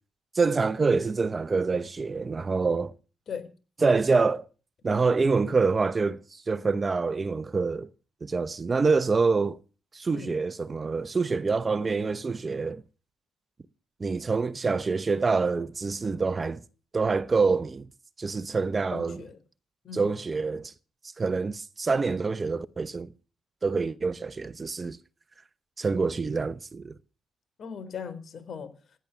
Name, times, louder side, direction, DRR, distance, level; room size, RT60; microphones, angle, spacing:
voice 1, 0.3-2.9 3.8-4.5 4.8-7.9 8.2-9.6 9.9-12.8 14.0-16.6 16.9-17.9 18.2-19.2 19.9-20.7 21.2-23.1 23.6-25.0 25.8-26.9, right 4 dB, 30° right, 0.9 m, -26 dB
voice 2, 18.9-19.4 19.8-20.1 27.6-28.7, left 6 dB, 55° left, 3.9 m, -38 dB
16.5 x 10.5 x 7.0 m
cardioid pair, 90°, 0 cm